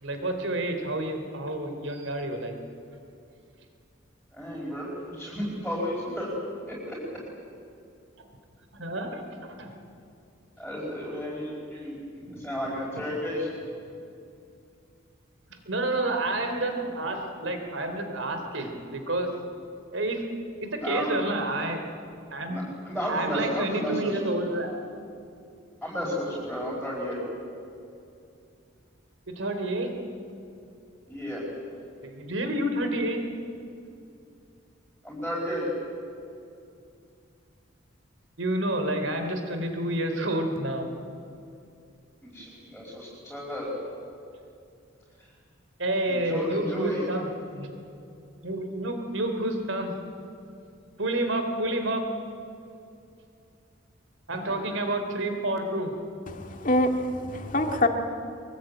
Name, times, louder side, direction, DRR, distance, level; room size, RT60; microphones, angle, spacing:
voice 1, 0.0-2.5 8.7-9.7 15.7-19.5 19.9-20.3 20.7-21.8 22.3-22.7 23.1-24.7 29.4-29.9 32.0-33.2 38.4-40.9 45.8-47.3 47.5-47.7 48.4-49.9 51.0-52.0 54.3-56.0, right 1 dB, 80° right, 6 dB, 3.2 m, -29 dB
voice 2, 4.3-6.3 6.7-7.0 10.6-13.5 20.8-21.1 22.5-24.4 25.8-27.2 31.1-31.4 35.0-35.7 42.2-43.7 46.1-47.1, equal, ahead, -7 dB, 5.1 m, -33 dB
voice 3, 56.3-57.9, left 1 dB, 40° left, 4 dB, 2.2 m, -25 dB
23.5 x 23.0 x 8.9 m, 2.5 s
head